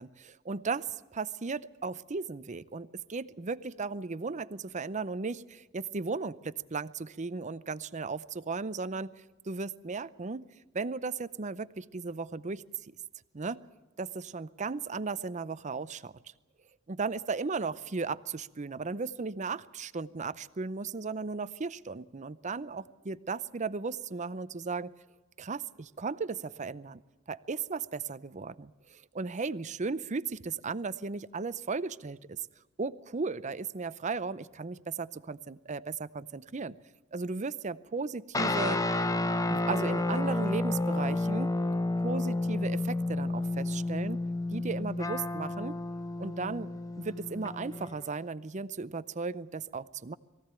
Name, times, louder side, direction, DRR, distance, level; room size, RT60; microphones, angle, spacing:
voice 1, 0.0-9.1 9.4-12.6 13.3-13.6 14.0-16.1 16.9-24.9 25.4-27.0 27.3-32.4 32.8-36.8 37.1-38.8 39.5-41.6 42.0-44.2 44.5-45.8 46.2-50.1, right 4 dB, 35° right, 15 dB, 0.6 m, -36 dB
sound 1, 38.3-48.0, left 2 dB, 15° left, 0.8 m, -31 dB
22.5 x 15.5 x 8.9 m, 1.2 s
head